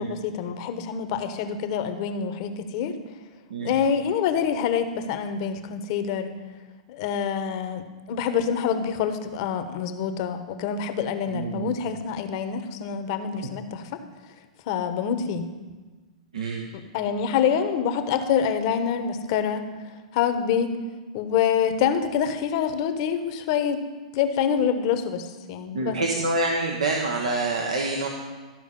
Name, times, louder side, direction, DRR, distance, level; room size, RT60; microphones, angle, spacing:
voice 1, 0.0-2.9 3.6-6.3 6.9-7.8 8.1-13.8 14.7-15.4 16.9-19.7 20.1-20.7 21.1-23.8 24.1-26.0, left 7 dB, 50° left, 9 dB, 1.0 m, -26 dB
voice 2, 3.5-3.9 11.3-11.7 16.3-16.7 25.7-28.1, right 2 dB, 80° right, 0 dB, 1.1 m, -27 dB
13.5 x 4.9 x 5.3 m, 1.3 s
hypercardioid pair, 115°, 4 cm